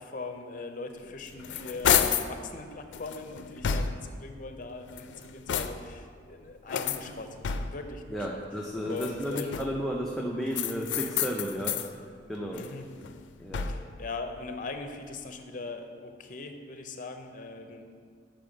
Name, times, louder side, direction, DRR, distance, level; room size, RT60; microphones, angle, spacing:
voice 1, 0.0-8.4 8.9-9.6 12.5-12.9 13.6-17.9, left 3 dB, 45° left, 6 dB, 0.6 m, -40 dB
sound 1, 1.0-2.4 2.9-4.2 4.8-6.0 6.7-7.9 8.8-9.9 10.5-11.9 12.3-14.0, left 7 dB, 90° left, 0.4 m, -31 dB
voice 2, 8.1-12.0 12.3-12.6 13.4-13.7, equal, ahead, -3 dB, 0.5 m, -33 dB
6.7 x 6.0 x 5.0 m, 2.1 s
head